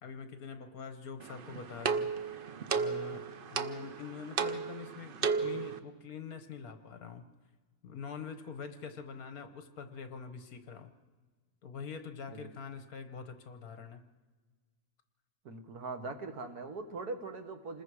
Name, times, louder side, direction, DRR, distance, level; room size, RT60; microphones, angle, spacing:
voice 1, 0.0-2.1 2.7-3.2 3.5-7.3 7.8-10.9 11.6-14.0, left 6 dB, 65° left, 8 dB, 1.6 m, -44 dB
sound 1, 1.2-5.8, right 5 dB, 50° right, 0.6 m, -34 dB
voice 2, 15.5-17.8, right 3 dB, 70° right, 6 dB, 1.9 m, -41 dB
27.5 x 20.5 x 4.9 m, 1.4 s
omnidirectional pair, 1.7 m